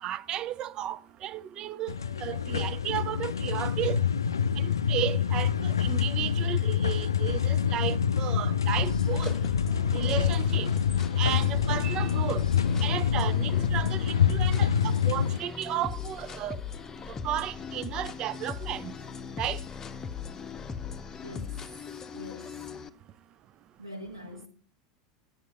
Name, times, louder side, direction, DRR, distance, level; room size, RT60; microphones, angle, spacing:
voice 1, 0.0-1.9 2.2-4.0 4.6-9.4 9.9-10.7 11.2-12.4 12.8-16.6 17.2-18.9 19.4-19.6, right 12 dB, 35° right, 0.5 m, -33 dB
sound 1, 1.9-15.4, left 8 dB, 75° left, 0.4 m, -26 dB
sound 2, 8.8-22.9, left 6 dB, 25° left, 0.8 m, -39 dB
voice 2, 21.2-22.7 23.8-24.5, equal, 90° right, 2.7 m, -44 dB
10.0 x 7.0 x 6.0 m
figure-of-eight pair, 80°, 2 cm